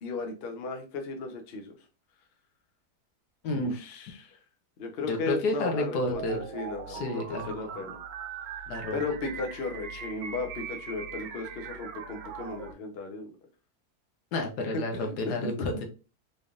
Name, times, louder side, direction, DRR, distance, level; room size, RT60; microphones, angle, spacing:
voice 1, 0.0-1.8 3.7-4.4 4.8-8.0 8.9-13.3 14.7-14.8 15.4-15.6, left 3 dB, 50° left, 3 dB, 0.8 m, -35 dB
voice 2, 3.4-3.8 5.1-6.4 6.9-7.7 8.7-9.0 14.3-15.9, left 2 dB, 85° left, 4 dB, 1.4 m, -30 dB
sound 1, 6.0-12.7, right 7 dB, 70° right, 1.0 m, -40 dB
4.0 x 3.3 x 2.4 m, 0.33 s
omnidirectional pair, 1.7 m